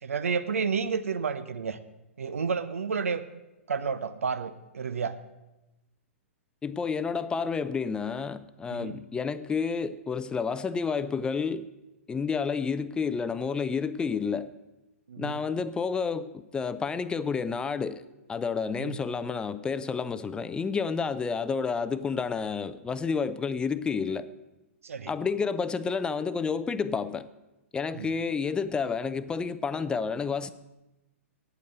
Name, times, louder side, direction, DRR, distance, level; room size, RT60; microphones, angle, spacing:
voice 1, 0.0-1.8 2.2-3.2 3.7-5.2 8.7-9.0 15.1-15.4 18.8-19.0 24.8-25.1 27.9-28.1, right 5 dB, 75° right, 0.8 m, -31 dB
voice 2, 6.6-11.7 12.1-14.5 15.2-18.0 18.3-24.3 25.1-27.3 27.7-30.5, left 5 dB, 10° left, 0.5 m, -30 dB
9.1 x 8.5 x 8.0 m
hypercardioid pair, 115°, 8 cm